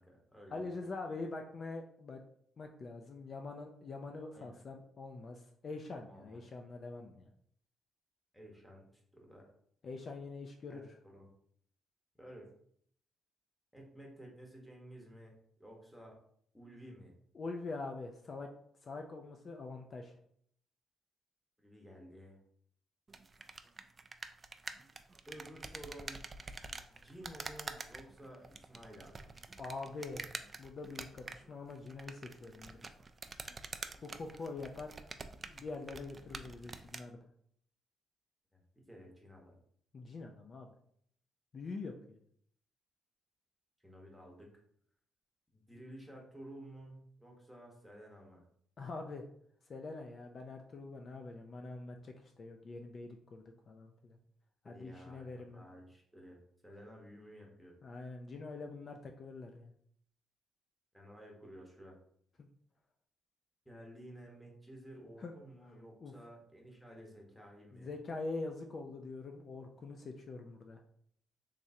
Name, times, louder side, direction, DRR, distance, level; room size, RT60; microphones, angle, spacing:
voice 1, 0.0-0.6 4.3-4.6 6.1-6.4 8.3-8.8 9.1-9.5 10.7-11.3 12.2-12.5 13.7-16.2 16.5-17.1 21.6-22.4 25.3-26.3 26.9-29.3 38.5-39.5 43.8-44.5 45.5-48.4 54.6-57.8 60.9-62.0 63.6-67.9, right 1 dB, ahead, -1 dB, 1.1 m, -53 dB
voice 2, 0.5-2.2 2.6-7.3 9.8-10.9 17.3-18.5 18.8-20.1 29.6-30.3 30.6-32.8 34.0-34.9 35.5-37.2 39.9-40.7 41.5-42.2 48.8-49.2 49.7-54.2 54.6-55.6 57.8-59.7 65.2-65.3 66.0-66.1 67.7-70.8, left 3 dB, 45° left, 3 dB, 0.4 m, -44 dB
sound 1, 23.1-37.1, right 3 dB, 30° right, 0.3 m, -47 dB
3.6 x 3.2 x 2.7 m, 0.65 s
cardioid pair, 90°, 0 cm